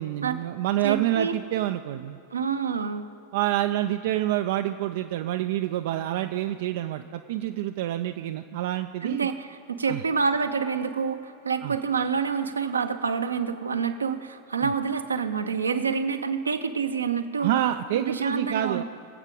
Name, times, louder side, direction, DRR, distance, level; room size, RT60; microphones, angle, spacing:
voice 1, 0.0-2.2 3.3-9.3 9.9-10.0 11.6-11.8 14.6-14.7 17.4-18.8, right 13 dB, 55° right, 8 dB, 0.3 m, -27 dB
voice 2, 0.8-1.4 2.3-3.0 9.0-17.5 17.9-18.8, right 5 dB, 75° right, 8 dB, 0.7 m, -27 dB
23.0 x 8.1 x 3.7 m, 2.7 s
figure-of-eight pair, 90°, 0 cm